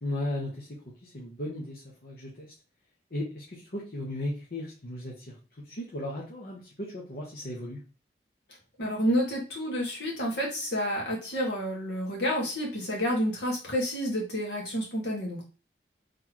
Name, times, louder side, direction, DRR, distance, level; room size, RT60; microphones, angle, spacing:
voice 1, 0.0-2.5 3.1-5.4 5.6-7.8, left 1 dB, 55° left, -4 dB, 1.1 m, -36 dB
voice 2, 8.8-15.4, equal, 80° left, -2 dB, 1.8 m, -29 dB
3.9 x 3.5 x 2.9 m, 0.34 s
head